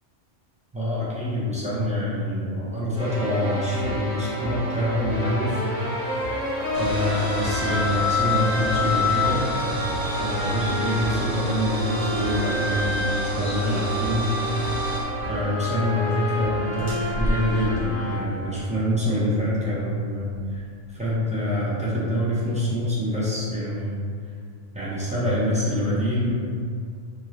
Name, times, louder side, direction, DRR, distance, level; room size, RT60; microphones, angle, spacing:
voice 1, 0.7-5.6 6.8-9.5 10.2-14.3 15.3-20.6 20.9-24.0 24.7-26.3, left 1 dB, 10° right, -9 dB, 0.3 m, -26 dB
sound 1, 3.0-18.2, left 2 dB, 45° left, 0.9 m, -28 dB
sound 2, 6.7-15.0, right 1 dB, 80° right, 1.0 m, -31 dB
sound 3, 16.7-21.3, equal, 25° right, 0.9 m, -34 dB
2.6 x 2.6 x 3.0 m, 2.2 s
omnidirectional pair, 1.3 m